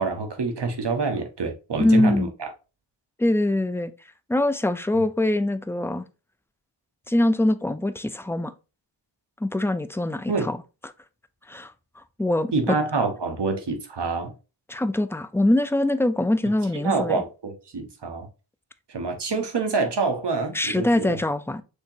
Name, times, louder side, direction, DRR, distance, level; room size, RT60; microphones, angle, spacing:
voice 1, 0.0-2.5 10.3-10.5 12.5-14.3 16.8-18.3 18.9-21.2, right 4 dB, 60° right, 1.2 m, -26 dB
voice 2, 1.8-2.3 3.2-3.9 4.3-6.0 7.1-8.5 9.4-10.6 10.8-10.9 11.5-11.7 12.2-12.8 14.7-17.2 20.5-21.6, left 1 dB, 5° left, 0.4 m, -23 dB
6.6 x 2.9 x 2.7 m
wide cardioid pair, 90°, 47 cm